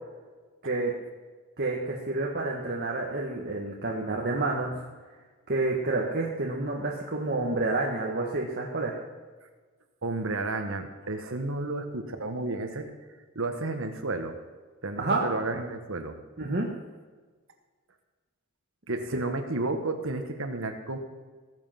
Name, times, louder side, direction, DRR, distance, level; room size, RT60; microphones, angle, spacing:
voice 1, 1.6-4.8 5.5-9.0 15.0-15.2 16.4-16.7, right 2 dB, 45° right, -2 dB, 1.7 m, -29 dB
voice 2, 10.0-12.9 13.3-14.4 14.8-16.2 18.9-21.0, right 2 dB, 60° right, 6 dB, 1.6 m, -32 dB
19.5 x 7.8 x 6.0 m, 1.4 s
head